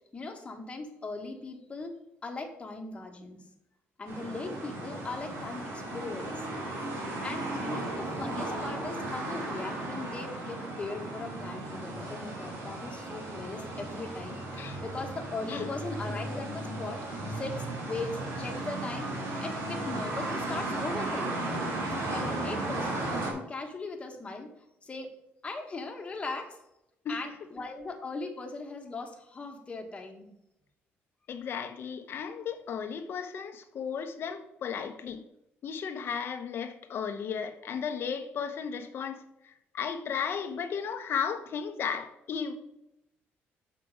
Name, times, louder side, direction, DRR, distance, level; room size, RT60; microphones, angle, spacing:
voice 1, 0.1-3.5 4.0-6.4 7.2-17.0 17.3-19.1 19.4-21.5 22.1-24.5 24.8-25.1 25.4-26.6 27.1-30.3, left 3 dB, 25° left, 3 dB, 1.6 m, -39 dB
sound 1, 4.1-23.3, right 2 dB, 75° right, 2.7 m, -35 dB
voice 2, 15.5-16.0 27.0-27.2 31.3-35.2 35.6-42.5, left 7 dB, 55° left, 7 dB, 1.0 m, -35 dB
7.1 x 5.9 x 5.0 m, 0.84 s
cardioid pair, 120°, 5 cm